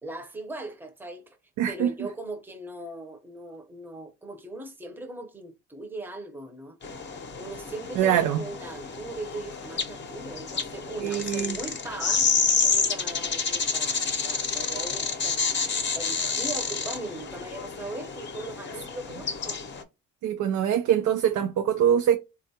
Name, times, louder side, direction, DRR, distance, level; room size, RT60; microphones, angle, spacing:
voice 1, 0.0-1.4 1.7-6.8 7.4-12.3 12.6-19.6, right 2 dB, 5° right, 0.7 m, -39 dB
voice 2, 1.6-1.9 8.0-8.4 11.0-11.6 20.2-22.2, right 9 dB, 75° right, 0.4 m, -23 dB
sound 1, 6.8-19.8, left 5 dB, 40° left, 0.7 m, -29 dB
3.4 x 2.3 x 2.7 m
cardioid pair, 90°, 30 cm